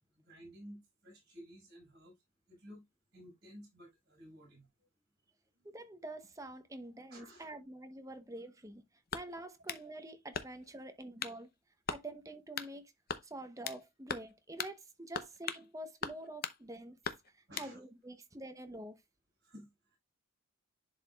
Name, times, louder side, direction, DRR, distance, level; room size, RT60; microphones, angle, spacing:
voice 1, 0.1-2.2 2.5-2.8 3.1-4.7 5.5-5.7 7.1-7.5 17.5-17.8 19.4-20.0, equal, 45° right, 5.0 m, -54 dB
voice 2, 5.6-11.5 11.9-12.9 13.2-17.0 17.3-19.0, right 1 dB, 15° right, 0.8 m, -47 dB
sound 1, 9.1-9.9 10.3-10.8 11.2-11.4 11.9-12.1 12.6-12.7 13.1-13.8 14.1-14.3 14.6-14.8 15.1-15.7 16.0-16.6 17.0-17.7, left 6 dB, 45° left, 0.7 m, -40 dB
11.0 x 4.8 x 2.3 m
head